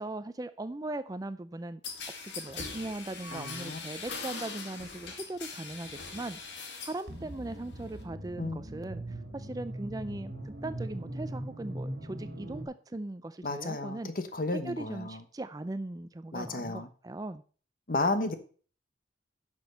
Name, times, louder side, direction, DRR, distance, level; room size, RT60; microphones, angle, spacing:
voice 1, 0.0-1.8 2.2-6.4 6.8-14.1 14.5-17.4, right 2 dB, 20° right, 0.4 m, -39 dB
sound 1, 1.8-7.0 7.4-8.0, left 4 dB, 75° left, 2.1 m, -41 dB
voice 2, 3.3-3.8 8.4-8.6 13.4-15.2 16.3-16.9 17.9-18.3, left 2 dB, 50° left, 1.1 m, -32 dB
sound 2, 7.1-12.6, right 1 dB, 55° right, 2.5 m, -40 dB
10.5 x 6.2 x 5.4 m
head